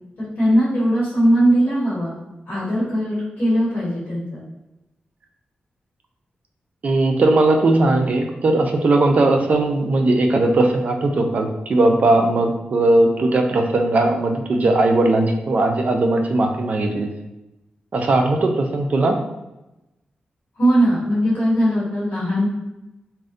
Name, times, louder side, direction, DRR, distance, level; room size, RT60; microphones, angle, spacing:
voice 1, 0.2-2.2 2.5-4.4 20.6-22.5, equal, 80° left, -9 dB, 1.0 m, -19 dB
voice 2, 6.8-17.1 17.9-19.2, right 2 dB, 50° right, 3 dB, 0.3 m, -18 dB
2.5 x 2.0 x 2.5 m, 0.96 s
wide cardioid pair, 125°, 3 cm